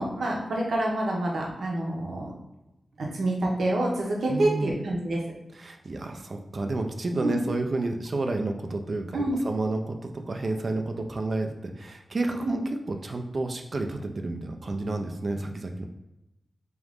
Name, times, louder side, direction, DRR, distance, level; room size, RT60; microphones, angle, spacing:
voice 1, 0.0-2.3 3.0-5.2 7.2-7.4 9.1-9.4 12.4-12.6, right 1 dB, 80° right, -2 dB, 0.8 m, -27 dB
voice 2, 4.3-4.8 5.5-15.8, right 2 dB, 45° right, 4 dB, 0.4 m, -30 dB
3.6 x 3.0 x 3.5 m, 0.93 s
wide cardioid pair, 145°, 0 cm